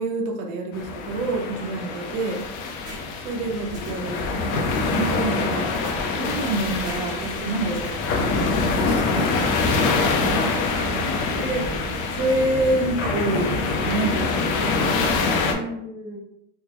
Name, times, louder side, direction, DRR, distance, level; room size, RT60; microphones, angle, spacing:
voice 1, 0.0-2.4 3.2-4.5 4.8-10.5 11.4-11.6 12.1-14.6, right 2 dB, 85° right, 1 dB, 0.8 m, -28 dB
sound 1, 0.7-15.5, left 3 dB, 70° left, 0.6 m, -25 dB
sound 2, 2.8-3.0 3.4-3.5 3.7-3.9 5.7-6.5 6.8-7.0 7.4-7.9 9.7-10.5, right 1 dB, 20° right, 0.9 m, -42 dB
voice 2, 10.7-11.5 12.7-12.9 15.4-16.2, left 2 dB, 15° left, -3 dB, 0.5 m, -37 dB
3.6 x 2.1 x 2.9 m, 0.79 s
cardioid pair, 175°, 42 cm